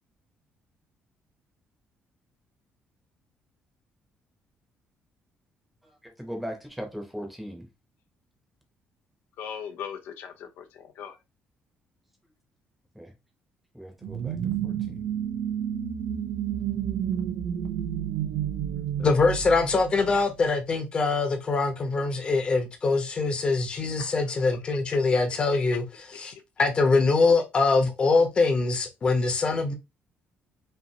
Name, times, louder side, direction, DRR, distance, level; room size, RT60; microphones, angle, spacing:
voice 1, 6.0-7.7 12.9-13.1 13.7-14.4 14.6-14.7, equal, 5° right, 1.0 m, -38 dB
voice 2, 9.4-11.2 24.0-24.3, left 8 dB, 75° left, 0.7 m, -39 dB
sound 1, 14.0-20.5, right 9 dB, 85° right, 0.8 m, -30 dB
voice 3, 19.0-25.8 26.2-26.3 26.6-29.7, left 3 dB, 30° left, 1.0 m, -23 dB
5.5 x 2.7 x 2.9 m
cardioid pair, 175°, 4 cm